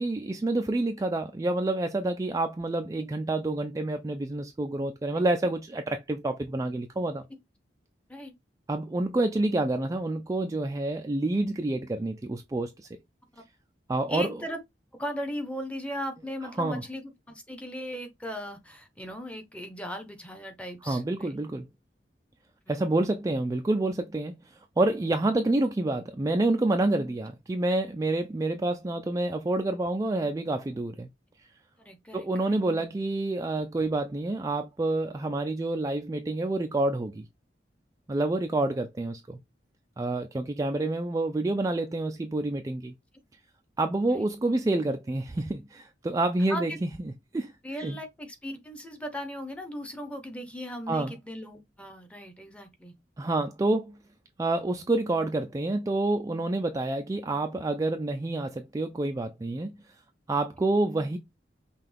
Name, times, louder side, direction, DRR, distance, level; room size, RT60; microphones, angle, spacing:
voice 1, 0.0-7.2 8.7-12.7 13.9-14.3 16.6-16.8 20.9-21.7 22.7-24.3 24.8-31.1 32.1-37.2 38.1-39.4 40.0-42.9 43.8-46.9 47.3-47.5 47.8-48.0 50.9-51.1 53.2-54.0 54.4-59.7 60.3-61.2, right 2 dB, 20° right, 0.3 m, -28 dB
voice 2, 14.1-14.6 14.9-21.4 31.8-32.6 44.1-44.3 46.5-46.8 47.6-52.9, equal, 5° left, 0.8 m, -38 dB
5.6 x 2.3 x 3.3 m
head